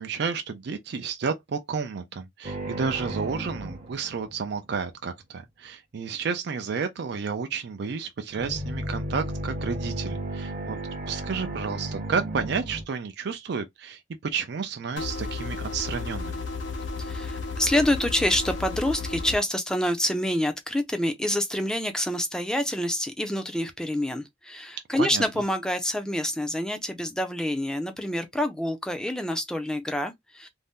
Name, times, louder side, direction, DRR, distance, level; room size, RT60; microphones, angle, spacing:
voice 1, 0.0-10.8 11.1-16.4 25.0-25.2, right 5 dB, 60° right, 0.4 m, -31 dB
sound 1, 2.4-4.7 8.3-12.8, right 1 dB, 40° right, 0.8 m, -34 dB
sound 2, 15.0-19.4, left 3 dB, 75° left, 0.7 m, -33 dB
voice 2, 17.0-30.5, left 1 dB, 5° left, 0.4 m, -27 dB
2.6 x 2.1 x 3.4 m
head